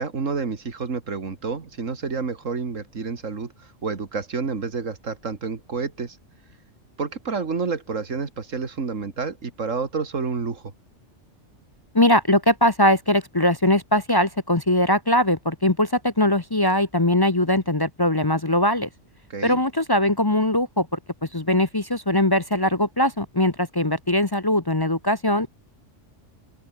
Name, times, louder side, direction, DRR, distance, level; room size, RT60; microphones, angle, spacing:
voice 1, 0.0-6.2 7.0-10.6 19.3-19.6, right 5 dB, 85° right, 2.5 m, -29 dB
voice 2, 11.9-18.9 19.4-21.0 21.3-25.5, left 1 dB, 20° left, 0.9 m, -21 dB
open air
omnidirectional pair, 1.3 m